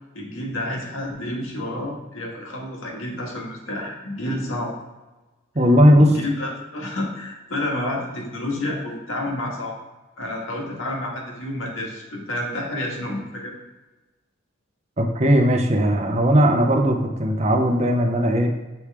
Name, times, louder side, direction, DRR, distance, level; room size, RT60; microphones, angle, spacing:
voice 1, 0.1-4.7 6.0-9.7 10.2-13.6, left 1 dB, 80° left, -2 dB, 1.7 m, -29 dB
voice 2, 5.5-6.2 15.0-18.5, equal, 35° right, 3 dB, 0.8 m, -17 dB
7.1 x 4.9 x 3.5 m, 1.1 s
head